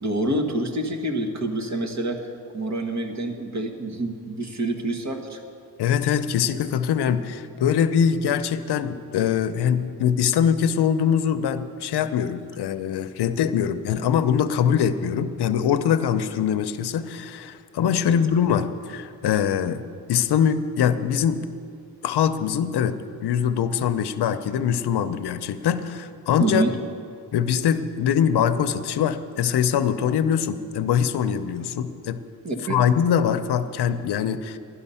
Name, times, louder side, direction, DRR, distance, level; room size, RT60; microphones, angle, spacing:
voice 1, 0.0-5.4 17.9-18.2 26.4-26.7 32.4-32.8, right 2 dB, 45° right, 4 dB, 1.6 m, -27 dB
voice 2, 5.8-19.8 20.1-21.4 22.0-26.6 27.3-32.2 32.7-34.6, left 8 dB, 75° left, 10 dB, 0.7 m, -23 dB
11.5 x 11.5 x 5.6 m, 2.3 s
cardioid pair, 100°, 40 cm